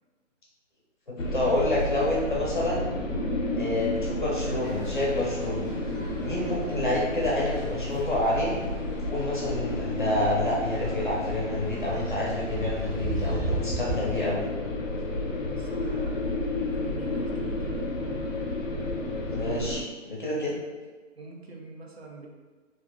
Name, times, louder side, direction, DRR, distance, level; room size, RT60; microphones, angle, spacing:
sound 1, 1.2-19.8, left 1 dB, 85° left, 0.6 m, -31 dB
voice 1, 1.3-2.9 3.5-5.7 6.2-8.6 9.0-14.5 19.3-20.5, left 1 dB, 40° left, -5 dB, 0.6 m, -28 dB
sound 2, 4.6-14.1, right 2 dB, 5° left, 0.8 m, -39 dB
voice 2, 15.6-16.2 16.7-17.9 20.2-20.7 21.2-22.3, right 3 dB, 55° right, -1 dB, 0.5 m, -44 dB
2.5 x 2.3 x 2.5 m, 1.4 s
hypercardioid pair, 175°, 38 cm